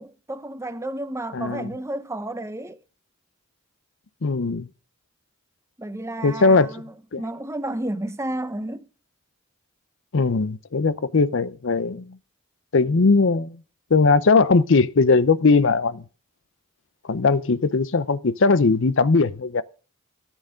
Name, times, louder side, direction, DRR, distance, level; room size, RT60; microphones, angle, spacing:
voice 1, 0.0-2.8 5.8-8.9, right 1 dB, 15° right, 0.6 m, -32 dB
voice 2, 1.3-1.7 4.2-4.7 6.2-6.7 7.1-7.2 10.1-12.2 12.7-13.6 13.9-16.0 17.1-19.6, left 4 dB, 55° left, 0.6 m, -19 dB
13.5 x 9.1 x 5.1 m
head